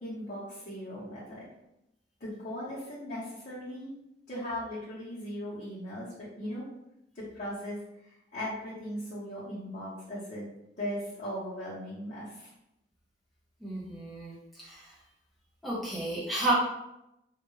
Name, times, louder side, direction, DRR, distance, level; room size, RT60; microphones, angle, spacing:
voice 1, 0.0-1.5 2.2-3.9 4.3-6.7 7.1-7.8 8.3-10.5 10.8-12.5, equal, 45° left, -12 dB, 0.7 m, -38 dB
voice 2, 13.6-14.9 15.6-16.5, right 2 dB, ahead, -8 dB, 0.7 m, -32 dB
2.2 x 2.2 x 3.0 m, 0.86 s
head